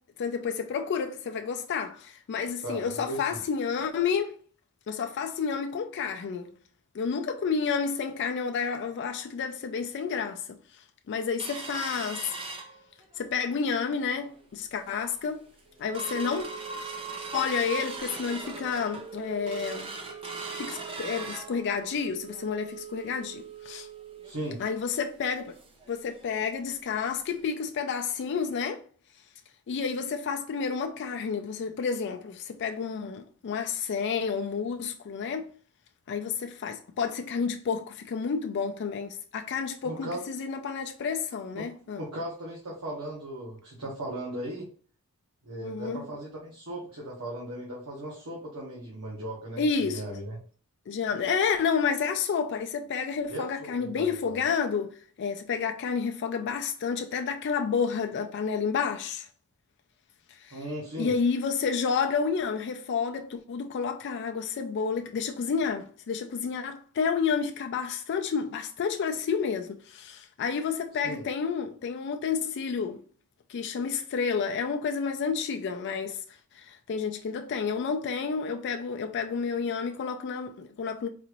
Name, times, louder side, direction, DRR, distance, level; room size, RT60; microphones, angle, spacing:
voice 1, 0.2-4.4 4.9-6.5 6.9-10.6 11.1-12.3 13.2-15.4 15.8-16.5 17.3-19.9 20.6-23.9 24.6-25.6 25.9-28.8 29.7-35.5 36.1-42.0 45.6-46.0 49.6-50.0 50.9-59.3 60.4-60.6 61.0-73.0 73.5-76.2 76.5-81.1, left 6 dB, 55° left, 0.3 m, -30 dB
voice 2, 2.6-3.4 24.2-24.6 39.8-40.2 41.5-41.7 42.0-44.7 45.4-50.4 53.3-54.4 60.5-61.1 71.0-71.2, right 1 dB, 85° right, 1.2 m, -37 dB
sound 1, 11.4-13.3 13.7-13.8 14.1-14.5 14.9-15.0 15.4-25.9 26.2-26.3 26.7-26.9 27.4-27.5, right 4 dB, 25° right, 0.5 m, -39 dB
4.0 x 2.5 x 3.0 m
head